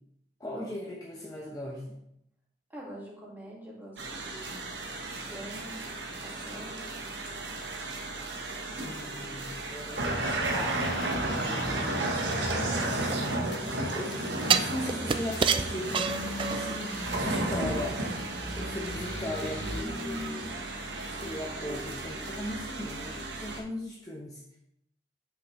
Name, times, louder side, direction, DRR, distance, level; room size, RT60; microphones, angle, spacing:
voice 1, 0.4-2.0 8.8-10.8 11.3-12.2 13.9-14.2 14.5-16.2 16.5-16.8 17.1-18.0 18.6-20.6 21.0-24.4, left 1 dB, 20° left, -3 dB, 1.0 m, -38 dB
voice 2, 2.7-4.7 5.2-5.8 6.2-6.8, right 1 dB, 10° right, -5 dB, 2.1 m, -45 dB
sound 1, 4.0-23.6, right 2 dB, 85° right, 1.2 m, -33 dB
sound 2, 10.2-13.7 14.1-14.2 14.4-14.9 15.3-16.1 16.5-16.6 16.8-19.8, left 3 dB, 90° left, 0.8 m, -46 dB
sound 3, 12.5-13.6 14.5-16.8 17.2-17.3, right 6 dB, 30° right, 0.3 m, -28 dB
8.6 x 6.0 x 3.2 m, 0.76 s
head